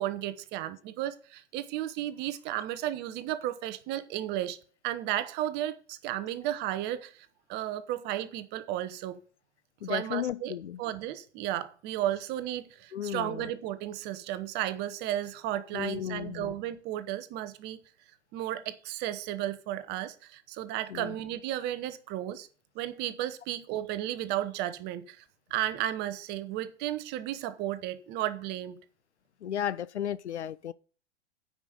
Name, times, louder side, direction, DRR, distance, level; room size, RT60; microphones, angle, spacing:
voice 1, 0.0-4.6 4.8-9.2 9.9-10.5 10.8-17.8 18.3-22.5 22.7-25.2 25.5-28.8, right 13 dB, 30° right, 0.9 m, -34 dB
voice 2, 9.8-10.8 12.9-13.5 15.7-16.5 20.9-21.1 29.4-30.7, left 10 dB, 70° left, 0.6 m, -34 dB
9.7 x 5.2 x 6.7 m
figure-of-eight pair, 100°, 35 cm